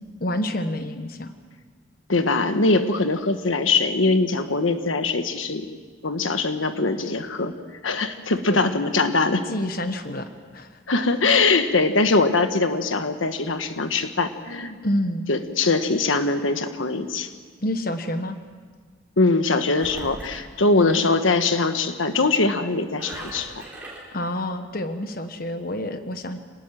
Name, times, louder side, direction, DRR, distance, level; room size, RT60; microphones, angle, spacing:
voice 1, 0.2-1.4 8.5-8.6 9.5-10.8 14.8-15.2 17.6-18.4 20.7-21.0 24.1-26.4, left 1 dB, 50° left, 8 dB, 1.2 m, -28 dB
voice 2, 2.1-5.7 6.0-7.6 7.8-9.4 10.9-14.8 15.3-17.3 19.2-23.5, left 3 dB, 90° left, 8 dB, 1.3 m, -22 dB
Engine, 19.7-21.2 22.9-24.2, right 1 dB, 10° right, 4.7 m, -40 dB
26.5 x 19.0 x 7.5 m, 1.5 s
head